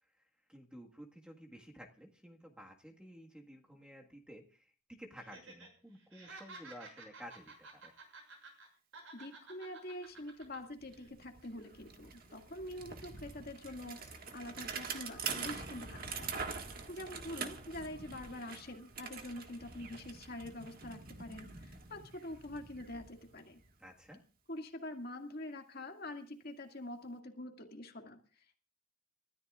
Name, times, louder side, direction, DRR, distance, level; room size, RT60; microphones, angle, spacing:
voice 1, 0.5-7.9 23.8-24.2, equal, 5° right, 0 dB, 1.6 m, -53 dB
Laughter, 5.2-5.7 6.0-8.7 8.9-10.6 10.9-11.1, right 3 dB, 65° right, 6.6 m, -52 dB
voice 2, 9.1-16.3 16.9-23.6 24.5-28.6, left 1 dB, 45° left, 3 dB, 2.1 m, -45 dB
Bicycle, 10.4-10.5 10.8-23.7, right 5 dB, 45° right, 1.7 m, -45 dB
30.0 x 14.0 x 2.5 m, 0.37 s
head